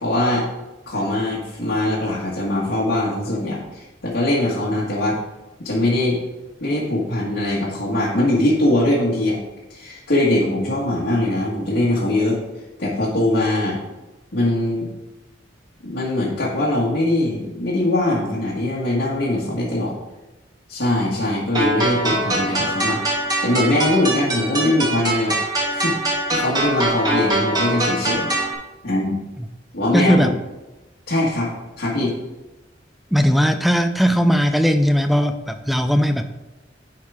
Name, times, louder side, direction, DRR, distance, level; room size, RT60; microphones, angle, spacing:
voice 1, 0.0-0.5 0.9-5.2 5.6-6.2 6.6-9.4 9.7-12.4 12.8-13.8 14.3-14.9 15.8-19.9 20.7-23.0 23.4-25.4 25.7-25.9 26.3-28.3 28.8-29.2 29.7-30.3 31.1-31.5 31.8-32.1, left 1 dB, 75° left, -7 dB, 1.6 m, -21 dB
sound 1, 21.5-28.5, right 1 dB, 25° right, 1.7 m, -23 dB
voice 2, 29.9-30.3 33.1-36.3, equal, ahead, 8 dB, 0.4 m, -18 dB
10.5 x 4.9 x 3.6 m, 1.1 s
head